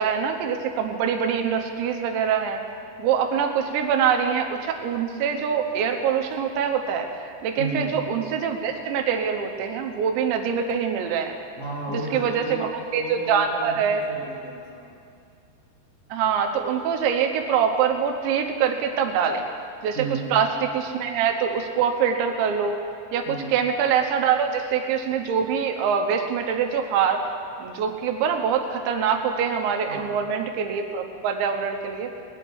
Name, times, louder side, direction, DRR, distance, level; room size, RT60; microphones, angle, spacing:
voice 1, 0.0-2.6 3.0-11.4 11.9-14.0 16.1-19.5 19.8-20.0 20.3-22.8 23.1-27.2 27.6-32.1, right 7 dB, 90° right, 4 dB, 3.3 m, -24 dB
voice 2, 7.6-8.0 11.6-14.9 19.9-20.4 23.2-23.6 29.9-30.2, right 2 dB, 55° left, -7 dB, 0.8 m, -33 dB
20.5 x 9.9 x 4.7 m, 2.4 s
omnidirectional pair, 5.1 m